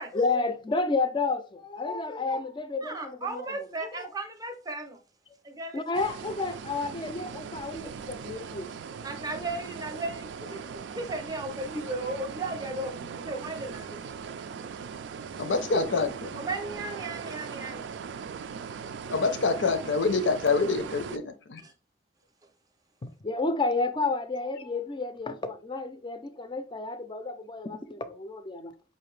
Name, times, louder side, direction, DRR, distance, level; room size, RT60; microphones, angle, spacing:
voice 1, 0.1-4.1 5.7-8.7 23.0-28.7, left 3 dB, 25° left, 0.4 m, -31 dB
voice 2, 2.8-5.0 5.4-6.1 9.0-14.1 16.4-17.9 21.6-21.7, right 2 dB, 20° right, 0.6 m, -36 dB
sound 1, 5.9-21.2, right 6 dB, 70° right, 0.3 m, -39 dB
voice 3, 15.4-16.5 19.1-21.6, left 4 dB, 85° left, 0.6 m, -26 dB
4.8 x 2.6 x 3.1 m
head